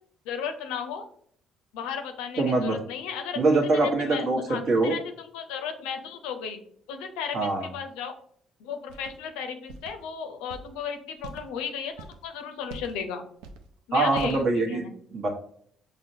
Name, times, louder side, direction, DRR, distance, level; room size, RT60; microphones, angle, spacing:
voice 1, 0.3-1.0 1.7-3.4 3.7-6.6 6.9-8.1 8.6-11.9 12.2-13.2 13.9-14.9, left 7 dB, 75° left, 6 dB, 0.5 m, -35 dB
voice 2, 2.4-2.8 3.4-4.9 7.3-7.7 13.9-14.9 15.1-15.3, right 2 dB, 55° right, 2 dB, 0.9 m, -23 dB
sound 1, 8.9-9.1 9.7-9.9 10.5-10.7 11.2-11.5 11.9-12.2 12.7-13.0 13.4-13.7 14.1-14.4, right 4 dB, 75° right, 0.4 m, -41 dB
6.0 x 2.1 x 2.7 m, 0.62 s
hypercardioid pair, 50°, 0 cm